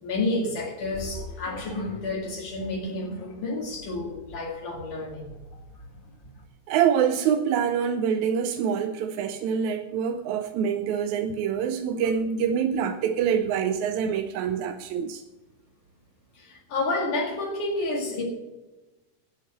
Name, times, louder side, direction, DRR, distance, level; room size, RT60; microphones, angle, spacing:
voice 1, 0.0-5.3 16.3-18.2, left 2 dB, 70° left, -2 dB, 3.5 m, -30 dB
sound 1, 0.9-6.5, left 3 dB, 40° left, 2.3 m, -43 dB
voice 2, 6.7-15.2, right 7 dB, 75° right, 7 dB, 1.9 m, -25 dB
10.5 x 8.0 x 7.6 m, 1.1 s
omnidirectional pair, 3.7 m